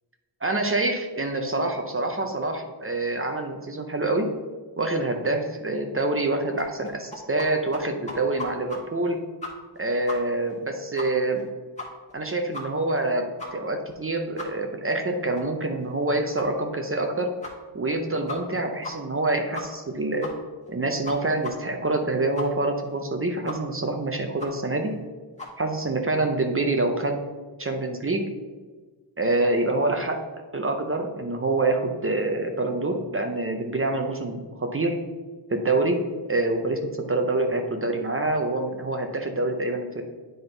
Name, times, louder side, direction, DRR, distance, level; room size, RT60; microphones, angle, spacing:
voice 1, 0.4-4.3 4.8-9.2 9.8-11.4 12.1-13.2 13.5-17.3 17.7-20.3 20.7-24.9 25.6-27.2 27.6-28.2 29.2-30.2 30.5-35.0 35.5-36.0 36.3-40.0, right 2 dB, 30° right, 4 dB, 0.6 m, -26 dB
sound 1, 6.6-7.5 7.7-7.8 8.1-8.8 9.1-9.2 9.4-9.8 10.1-10.2 10.5-10.6 11.0-11.1 11.4-11.5 11.8-12.1 12.5-12.6 13.0-13.1 13.4-13.5 13.9-14.0 14.4-14.5 14.9-15.0 15.4-15.5 15.8-15.9 16.4-16.5 16.9-17.0 17.4-17.5 17.9-18.0 18.3-18.6 18.8-18.9 19.2-19.3 19.5-19.9 20.2-20.3 20.7-20.8 21.0-21.1 21.4-21.5 21.8-21.9 22.4-22.5 22.8-22.9 23.5-23.6 23.9-24.0 24.4-24.5 24.9-25.0 25.4-25.5, left 2 dB, 15° left, 1.4 m, -36 dB
8.9 x 3.9 x 3.8 m, 1.4 s
wide cardioid pair, 115°, 48 cm